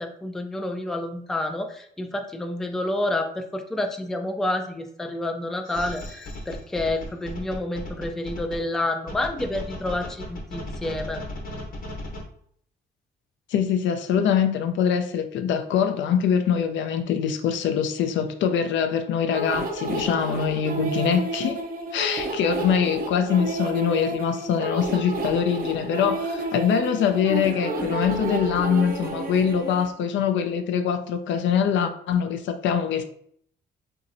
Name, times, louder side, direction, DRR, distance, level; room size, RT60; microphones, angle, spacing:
voice 1, 0.0-11.2, left 1 dB, ahead, 0.3 m, -29 dB
sound 1, 5.7-8.6 9.1-12.2, left 1 dB, 45° left, 1.0 m, -36 dB
voice 2, 13.5-21.6 21.9-33.0, left 7 dB, 70° left, 0.4 m, -23 dB
sound 2, 19.3-29.9, right 2 dB, 45° right, 0.5 m, -31 dB
3.0 x 2.7 x 2.6 m
cardioid pair, 90°, 20 cm